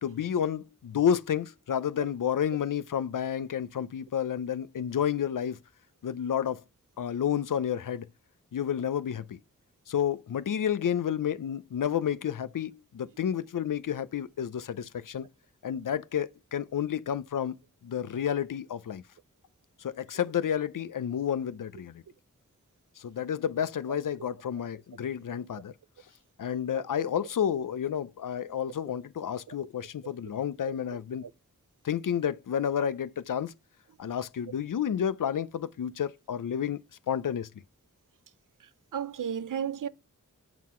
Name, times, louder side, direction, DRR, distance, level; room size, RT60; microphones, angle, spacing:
voice 1, 0.0-5.6 6.0-6.6 7.0-8.1 8.5-9.4 9.9-15.3 15.6-17.6 17.8-19.0 19.8-22.0 23.0-25.7 26.4-31.2 31.8-33.5 34.0-36.8 37.1-37.5, left 9 dB, 75° left, 0.6 m, -30 dB
voice 2, 38.9-39.9, right 8 dB, 75° right, 0.5 m, -33 dB
7.4 x 4.0 x 4.3 m
wide cardioid pair, 75°, 32 cm